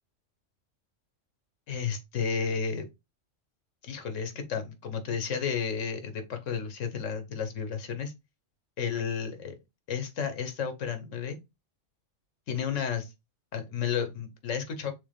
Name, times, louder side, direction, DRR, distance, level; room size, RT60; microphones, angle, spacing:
voice 1, 1.7-2.9 3.8-8.1 8.8-9.6 9.9-11.4 12.5-13.1 13.5-14.9, left 6 dB, 80° left, 1.2 m, -32 dB
6.3 x 2.1 x 3.4 m
omnidirectional pair, 1.3 m